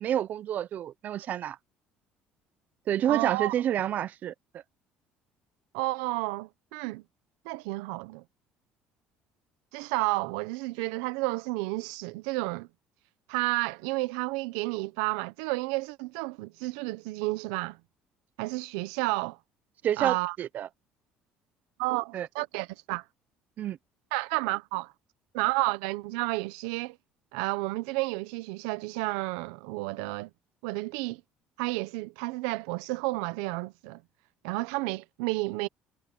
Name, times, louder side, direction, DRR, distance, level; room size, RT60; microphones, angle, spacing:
voice 1, 0.0-1.6 2.9-4.3 19.8-20.7 22.1-22.3 23.6-23.8, right 10 dB, 55° right, 0.9 m, -28 dB
voice 2, 3.1-3.5 5.7-7.0 7.4-8.2 9.7-12.7 13.3-17.8 18.4-19.4 20.0-20.4 21.8-23.0 24.1-24.9 25.3-27.0 27.3-30.3 30.6-31.2 31.6-34.0 34.4-35.7, right 22 dB, 85° right, 1.1 m, -31 dB
supercardioid pair, 85°, 3 cm